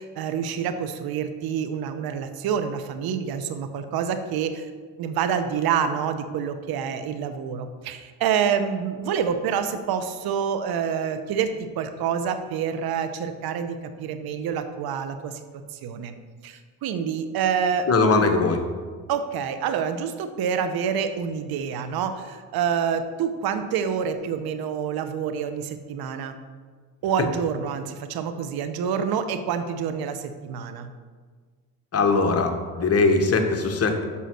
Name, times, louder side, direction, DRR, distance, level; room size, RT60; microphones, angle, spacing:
voice 1, 0.0-4.7 5.0-15.3 15.7-16.1 16.4-18.3 19.1-26.4 27.0-30.9, right 7 dB, 60° right, 9 dB, 0.8 m, -27 dB
voice 2, 17.9-18.6 31.9-34.0, left 4 dB, 35° left, 5 dB, 1.3 m, -21 dB
6.9 x 5.5 x 6.4 m, 1.5 s
supercardioid pair, 80°, 41 cm